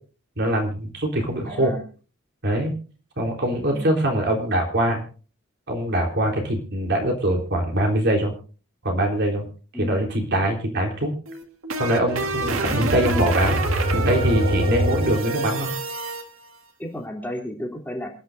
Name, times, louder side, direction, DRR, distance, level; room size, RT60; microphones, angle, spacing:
voice 1, 0.4-1.7 2.4-2.8 3.2-5.0 5.7-8.3 8.8-9.5 9.7-11.1 11.8-13.6 13.9-15.7, right 1 dB, 60° right, 1 dB, 3.7 m, -23 dB
voice 2, 1.4-1.8 3.7-3.9 9.7-10.0 12.6-12.8 16.8-18.1, equal, 10° left, 0 dB, 3.1 m, -33 dB
sound 1, 11.3-16.2, right 1 dB, 90° right, 1.8 m, -24 dB
27.5 x 10.5 x 2.6 m, 0.37 s
head